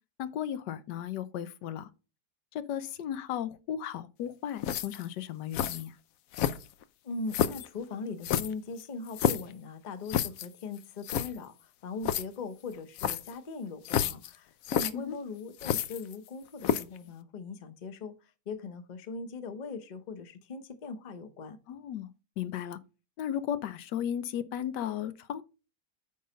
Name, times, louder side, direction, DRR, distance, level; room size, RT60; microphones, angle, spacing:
voice 1, 0.2-1.9 2.5-5.9 14.9-15.2 21.7-22.1 22.4-22.8 23.2-25.4, left 10 dB, 90° left, 1.3 m, -35 dB
sound 1, 4.6-5.1 5.5-5.8 6.3-6.8 7.3-7.7 8.2-9.5 10.1-10.5 10.8-10.9 11.0-11.3 12.0-12.2 13.0-13.3 13.8-14.3 14.6-14.9 15.6-16.3 16.6-17.0, left 9 dB, 70° left, 0.9 m, -29 dB
voice 2, 7.0-18.1 18.5-21.6, left 4 dB, 35° left, 0.7 m, -40 dB
9.5 x 3.9 x 5.1 m
omnidirectional pair, 1.8 m